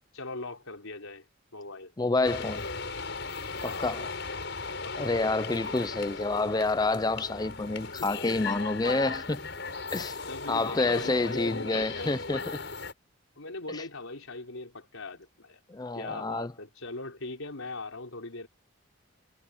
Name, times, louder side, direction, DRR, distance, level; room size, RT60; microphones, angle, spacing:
voice 1, 0.1-1.2 1.5-1.9 3.7-3.9 4.8-5.1 7.8-8.1 10.0-12.1 13.4-15.6 15.9-18.5, left 2 dB, 85° left, 4.5 m, -40 dB
voice 2, 2.0-2.7 3.6-4.1 5.0-9.5 9.9-10.1 10.5-12.4 13.7-13.8 15.7-16.5, left 2 dB, 20° left, 0.4 m, -28 dB
sound 1, 2.2-12.9, left 4 dB, 60° left, 6.2 m, -37 dB
head